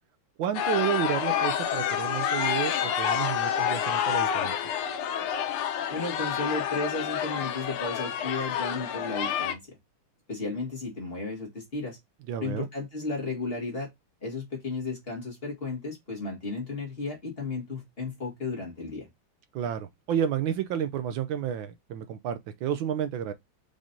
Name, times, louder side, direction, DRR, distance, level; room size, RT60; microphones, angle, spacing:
voice 1, 0.4-4.6 12.3-12.7 19.5-23.3, right 9 dB, 75° right, 1.3 m, -30 dB
sound 1, 0.5-9.5, left 9 dB, 85° left, 1.6 m, -28 dB
voice 2, 5.9-9.6 10.3-12.0 12.4-13.9 14.2-19.1, left 3 dB, 30° left, 1.9 m, -34 dB
5.0 x 3.7 x 2.6 m
omnidirectional pair, 2.3 m